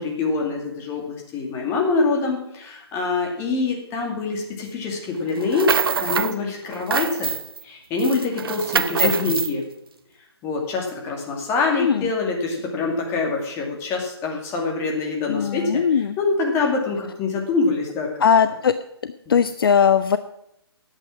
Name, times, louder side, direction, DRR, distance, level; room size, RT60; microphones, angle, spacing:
voice 1, 0.0-5.7 6.0-7.3 7.6-9.7 10.4-15.8 16.2-18.1, left 4 dB, 20° left, 0 dB, 2.4 m, -25 dB
sound 1, 5.4-6.4 6.7-7.6 8.0-9.5, right 7 dB, 55° right, 0.6 m, -25 dB
voice 2, 11.8-12.1 15.3-16.2 18.2-18.7 19.0-20.2, left 7 dB, 55° left, 12 dB, 0.5 m, -19 dB
11.0 x 8.3 x 6.2 m, 0.81 s
figure-of-eight pair, 140°, 14 cm